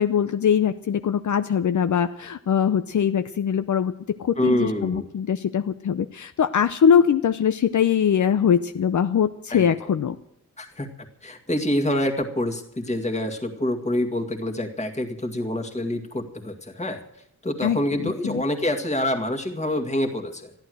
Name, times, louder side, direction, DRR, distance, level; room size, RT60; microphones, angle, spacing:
voice 1, 0.0-3.9 4.2-10.2 17.6-17.8 18.2-18.4, left 8 dB, 65° left, 10 dB, 0.7 m, -22 dB
voice 2, 4.4-5.1 9.5-9.9 10.6-10.9 11.2-17.0 17.4-20.6, left 1 dB, 20° left, 3 dB, 2.1 m, -26 dB
14.5 x 11.5 x 7.8 m, 0.75 s
wide cardioid pair, 175°, 32 cm